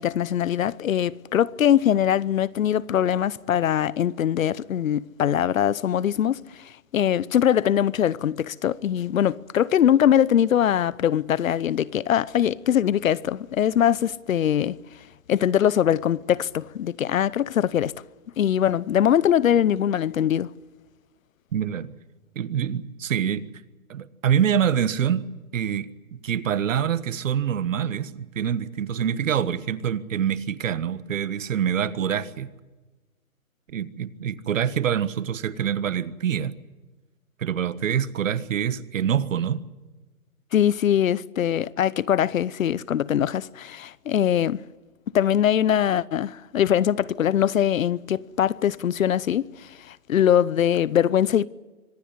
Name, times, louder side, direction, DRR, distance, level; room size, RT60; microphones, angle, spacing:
voice 1, 0.0-6.4 6.9-14.8 15.3-17.9 18.4-20.5 40.5-44.6 45.1-49.5 49.9-51.5, left 10 dB, 65° left, 0.9 m, -22 dB
voice 2, 21.5-21.9 22.3-23.4 23.9-32.5 33.7-36.5 37.4-39.6, right 8 dB, 60° right, 1.5 m, -25 dB
25.0 x 18.0 x 9.7 m
hypercardioid pair, 165°, 43 cm